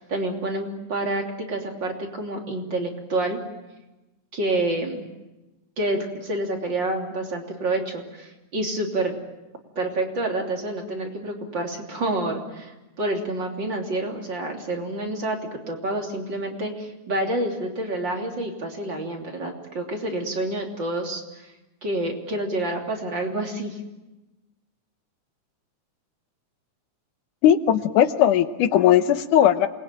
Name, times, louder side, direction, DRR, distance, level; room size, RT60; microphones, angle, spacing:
voice 1, 0.0-3.4 4.3-5.1 5.8-9.1 9.8-21.5 21.8-23.8, right 2 dB, 35° right, 1 dB, 3.7 m, -28 dB
voice 2, 27.4-29.7, left 10 dB, 85° left, 10 dB, 2.6 m, -18 dB
28.0 x 21.5 x 9.1 m, 1.0 s
omnidirectional pair, 3.5 m